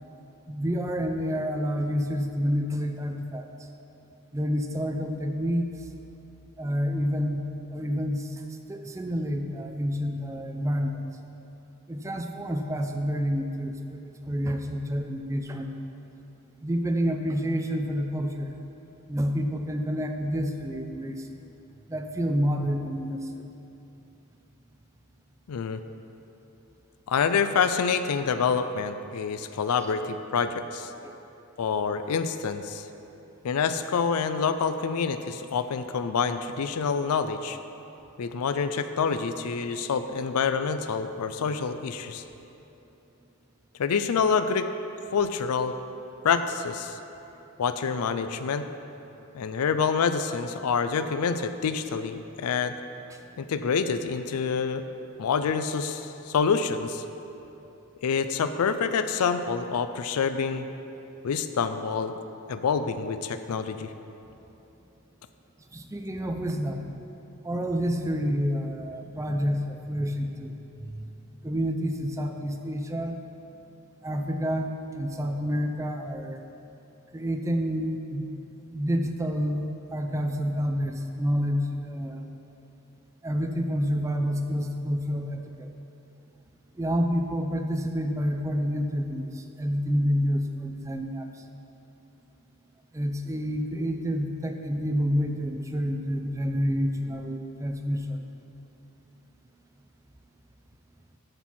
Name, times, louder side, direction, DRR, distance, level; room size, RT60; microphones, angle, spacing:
voice 1, 0.5-3.4 4.3-5.7 6.6-7.5 7.7-8.4 8.7-11.0 11.9-15.7 16.6-18.5 19.1-21.3 21.9-23.4 29.8-29.9 53.1-53.2 65.7-66.9 67.4-71.1 71.4-73.2 74.0-76.4 77.1-78.3 78.7-82.3 83.2-85.7 86.8-91.3 92.9-98.2, equal, 15° right, 4 dB, 0.4 m, -28 dB
voice 2, 25.5-25.8 27.1-30.9 31.6-32.8 33.4-37.6 38.2-42.2 43.8-44.7 45.1-45.7 46.2-47.0 47.6-48.7 49.3-52.7 53.4-54.8 55.2-57.0 58.0-60.7 61.2-62.2 62.5-63.9, left 6 dB, 85° left, 10 dB, 0.4 m, -27 dB
13.0 x 4.4 x 4.2 m, 3.0 s
head